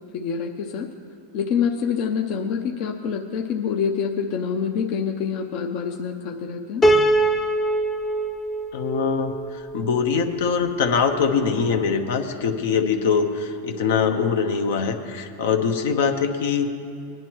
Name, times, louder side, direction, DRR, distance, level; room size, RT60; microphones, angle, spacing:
voice 1, 0.1-0.9 1.3-6.9, left 6 dB, 50° left, 3 dB, 0.7 m, -26 dB
Piano, 6.8-10.0, right 1 dB, 15° left, 0.6 m, -22 dB
voice 2, 8.7-16.7, left 6 dB, 70° left, 6 dB, 1.0 m, -23 dB
20.5 x 10.5 x 3.1 m, 2.5 s
supercardioid pair, 140°, 0 cm